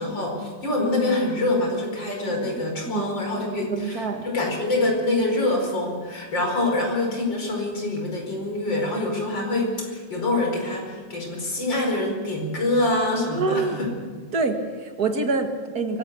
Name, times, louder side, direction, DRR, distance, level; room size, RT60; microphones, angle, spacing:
voice 1, 0.0-13.9, left 2 dB, 80° left, 1 dB, 5.7 m, -25 dB
voice 2, 3.7-4.2 13.3-13.8 14.3-16.0, right 3 dB, 55° right, 5 dB, 2.4 m, -26 dB
23.5 x 17.0 x 6.9 m, 1.5 s
omnidirectional pair, 2.0 m